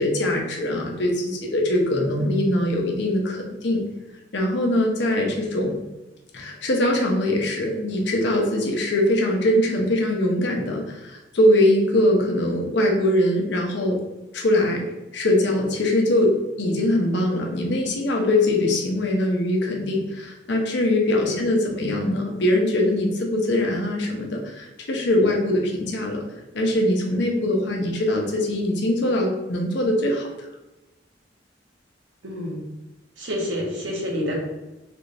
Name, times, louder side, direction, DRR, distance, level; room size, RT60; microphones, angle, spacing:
voice 1, 0.0-3.8 4.3-5.8 6.3-14.0 14.3-14.8 15.1-26.3 26.5-30.5, left 1 dB, 70° left, 1 dB, 0.7 m, -22 dB
voice 2, 32.2-32.6 33.2-34.4, equal, 90° right, -2 dB, 1.1 m, -28 dB
3.3 x 3.2 x 2.6 m, 1.0 s
head